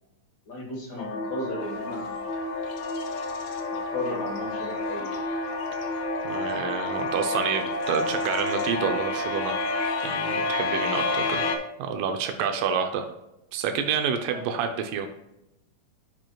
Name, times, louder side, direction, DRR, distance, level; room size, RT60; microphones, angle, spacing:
voice 1, 0.4-2.2 3.7-5.1 14.3-14.5, left 1 dB, 50° left, 0 dB, 1.3 m, -35 dB
sound 1, 1.0-11.6, left 3 dB, 90° left, 1.3 m, -29 dB
sound 2, 1.6-11.6, left 6 dB, 75° left, 2.3 m, -46 dB
voice 2, 6.2-9.6 10.0-11.5 11.8-13.1 13.5-15.1, right 7 dB, 85° right, 6 dB, 2.3 m, -28 dB
10.5 x 5.2 x 2.3 m, 0.91 s
omnidirectional pair, 3.8 m